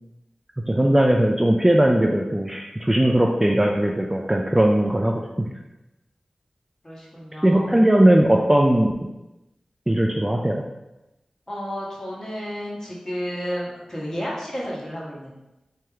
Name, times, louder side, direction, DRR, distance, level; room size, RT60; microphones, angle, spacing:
voice 1, 0.7-5.5 7.4-8.9 9.9-10.6, right 1 dB, 15° right, 0 dB, 0.3 m, -19 dB
voice 2, 6.8-7.7 11.5-15.3, equal, 30° left, -5 dB, 1.3 m, -32 dB
3.3 x 2.9 x 3.5 m, 0.97 s
wide cardioid pair, 55°, 2 cm